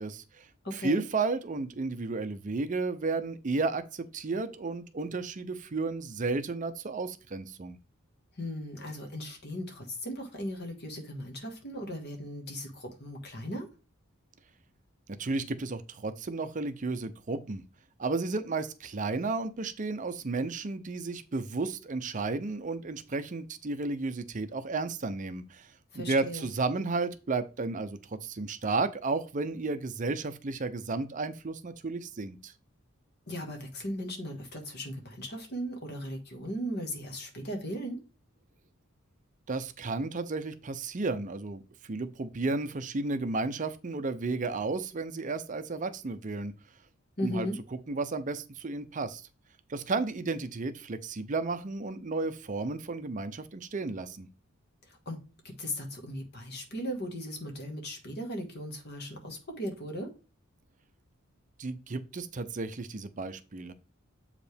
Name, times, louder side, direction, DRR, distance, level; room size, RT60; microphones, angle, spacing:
voice 1, 0.0-7.8 15.2-17.6 18.0-32.5 39.5-46.5 47.2-47.5 47.9-49.2 49.7-54.3 61.6-63.7, right 3 dB, 40° right, 10 dB, 0.5 m, -33 dB
voice 2, 0.6-1.0 8.3-13.7 25.9-26.5 33.3-38.0 47.2-47.6 54.9-55.2 55.4-60.1, equal, 50° left, 3 dB, 1.7 m, -37 dB
7.7 x 4.9 x 3.4 m, 0.33 s
head